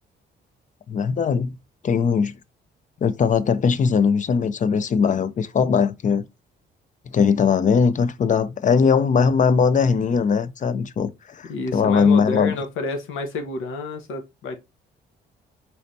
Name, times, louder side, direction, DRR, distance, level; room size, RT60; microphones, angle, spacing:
voice 1, 0.9-1.6 1.8-2.3 3.0-6.3 7.1-12.5, left 6 dB, 40° left, 0.5 m, -20 dB
voice 2, 11.5-14.6, left 3 dB, 90° left, 1.0 m, -29 dB
4.2 x 3.2 x 2.6 m
cardioid pair, 90°, 20 cm